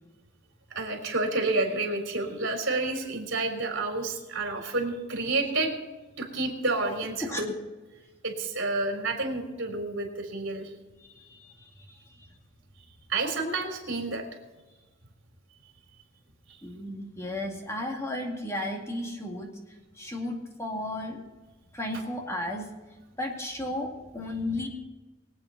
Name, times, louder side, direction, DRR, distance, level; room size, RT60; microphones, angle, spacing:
voice 1, 0.7-5.7 6.2-7.5 8.2-10.7 13.1-14.2 16.5-16.6, right 2 dB, 60° right, 2 dB, 3.9 m, -29 dB
voice 2, 11.0-12.3 16.6-19.5 19.9-21.2 21.7-22.7 23.2-24.7, left 1 dB, 15° left, 0 dB, 2.3 m, -34 dB
23.5 x 8.8 x 4.1 m, 1.2 s
head